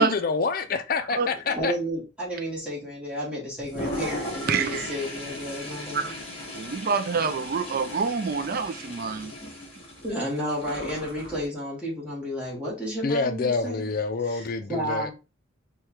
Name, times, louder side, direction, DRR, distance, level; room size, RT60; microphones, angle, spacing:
voice 1, 0.0-1.7 13.0-15.1, left 4 dB, 45° left, 0.4 m, -27 dB
voice 2, 1.4-6.1 9.4-9.5 10.0-13.9 14.3-15.1, equal, 5° right, 1.5 m, -32 dB
Toilet flush, 3.6-11.5, left 1 dB, 30° left, 1.2 m, -37 dB
voice 3, 4.5-5.0 5.9-6.2 6.6-9.3, right 5 dB, 45° right, 0.4 m, -26 dB
4.8 x 2.3 x 2.9 m
head